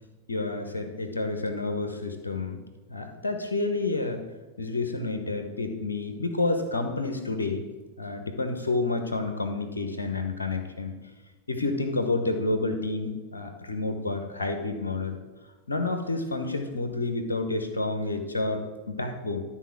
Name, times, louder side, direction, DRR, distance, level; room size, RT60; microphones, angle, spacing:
voice 1, 0.3-2.6 2.9-4.2 4.6-7.7 8.0-10.9 11.5-15.2 15.7-19.4, left 3 dB, 75° left, 6 dB, 1.0 m, -29 dB
12.0 x 4.2 x 6.0 m, 1.2 s
figure-of-eight pair, 90°, 0 cm